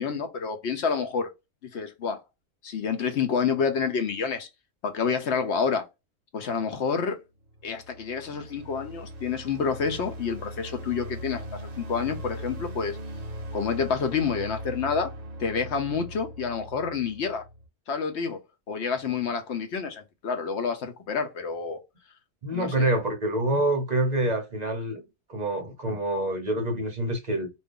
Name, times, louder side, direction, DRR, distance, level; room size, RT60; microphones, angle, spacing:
voice 1, 0.0-1.3 1.7-2.2 2.6-4.5 4.8-5.8 6.3-7.2 7.6-13.0 13.5-15.1 15.4-17.4 17.9-18.4 18.7-21.8 22.5-22.9, left 6 dB, 60° left, 0.8 m, -28 dB
sound 1, 7.4-17.7, right 1 dB, 60° right, 0.4 m, -39 dB
voice 2, 22.4-25.0 25.3-27.5, right 1 dB, 35° right, 0.7 m, -26 dB
2.6 x 2.5 x 3.6 m
omnidirectional pair, 1.6 m